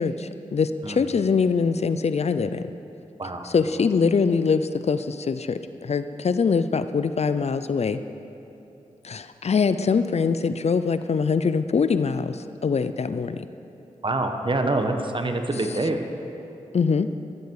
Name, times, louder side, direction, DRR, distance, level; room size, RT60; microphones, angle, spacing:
voice 1, 0.0-2.7 3.4-8.0 9.0-13.5 16.7-17.1, left 5 dB, 55° left, 12 dB, 0.6 m, -23 dB
voice 2, 14.0-16.0, right 2 dB, 40° right, 5 dB, 1.5 m, -25 dB
14.0 x 13.5 x 4.9 m, 2.9 s
cardioid pair, 40°, 13 cm